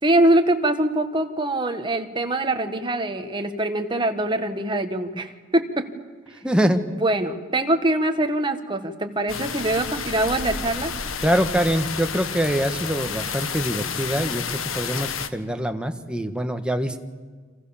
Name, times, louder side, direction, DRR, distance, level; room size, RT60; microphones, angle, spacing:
voice 1, 0.0-5.9 6.9-10.9, right 1 dB, 25° right, 6 dB, 1.7 m, -23 dB
voice 2, 6.4-6.8 11.2-17.0, equal, 5° right, 6 dB, 1.5 m, -24 dB
sound 1, 9.3-15.3, left 6 dB, 85° left, 1.5 m, -30 dB
30.0 x 26.5 x 7.3 m, 1.5 s
head